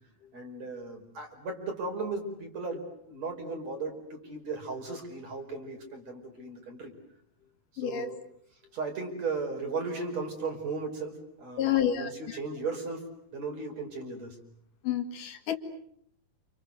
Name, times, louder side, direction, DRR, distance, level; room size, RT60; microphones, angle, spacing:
voice 1, 0.3-6.9 7.7-8.2 8.7-14.4, right 3 dB, 55° right, 3 dB, 6.1 m, -36 dB
voice 2, 7.8-8.1 11.6-12.1 14.9-15.6, left 10 dB, 75° left, 6 dB, 3.7 m, -28 dB
29.5 x 29.0 x 6.7 m, 0.69 s
omnidirectional pair, 3.7 m